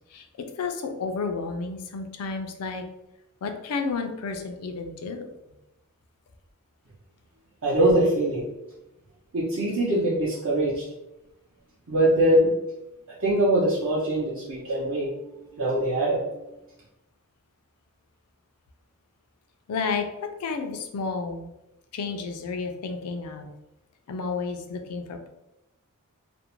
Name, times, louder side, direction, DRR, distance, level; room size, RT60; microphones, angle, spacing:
voice 1, 0.6-2.8 3.4-5.2 19.7-21.5 21.9-23.5 24.1-25.3, left 4 dB, 85° left, 6 dB, 0.4 m, -31 dB
voice 2, 7.6-8.4 9.3-10.8 11.9-12.5 13.2-15.2 15.5-16.3, right 1 dB, 60° right, -7 dB, 0.7 m, -22 dB
2.5 x 2.1 x 2.9 m, 0.90 s
head